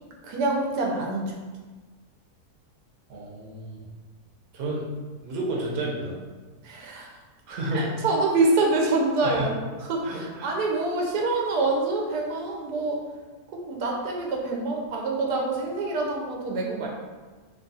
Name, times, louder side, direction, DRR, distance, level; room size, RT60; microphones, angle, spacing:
voice 1, 0.2-1.3 6.6-7.1 7.7-9.5 9.8-13.0 13.5-16.9, right 3 dB, 90° right, -1 dB, 1.2 m, -26 dB
voice 2, 3.1-3.8 4.5-4.9 5.2-6.1 7.5-7.9 9.2-9.5 10.0-10.5, right 1 dB, 60° right, -3 dB, 1.0 m, -31 dB
2.9 x 2.3 x 3.9 m, 1.3 s
omnidirectional pair, 1.7 m